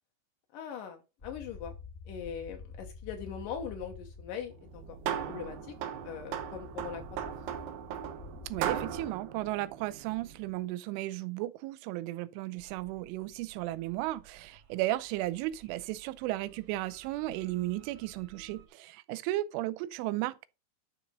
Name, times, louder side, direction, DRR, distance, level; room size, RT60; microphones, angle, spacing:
voice 1, 0.5-1.7 2.1-5.0 5.3-5.7 6.0-7.3, left 7 dB, 80° left, 1.9 m, -41 dB
sound 1, 1.2-9.1, left 4 dB, 15° left, 1.2 m, -48 dB
sound 2, 4.6-10.5, right 9 dB, 70° right, 2.8 m, -38 dB
voice 2, 8.5-20.5, right 16 dB, 90° right, 3.1 m, -35 dB
sound 3, 12.6-18.7, right 7 dB, 55° right, 3.0 m, -58 dB
11.5 x 4.0 x 5.2 m
omnidirectional pair, 5.5 m